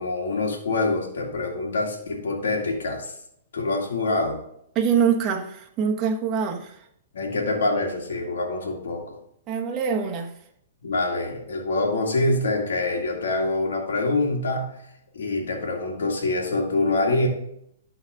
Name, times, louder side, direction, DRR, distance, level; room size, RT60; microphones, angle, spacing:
voice 1, 0.0-3.1 3.5-4.4 7.1-9.2 10.8-14.7 15.1-17.3, left 2 dB, 80° left, -1 dB, 2.0 m, -25 dB
voice 2, 4.7-6.8 9.5-10.3, right 7 dB, 30° right, 2 dB, 1.2 m, -24 dB
12.0 x 4.0 x 3.6 m, 0.71 s
hypercardioid pair, 130°, 0 cm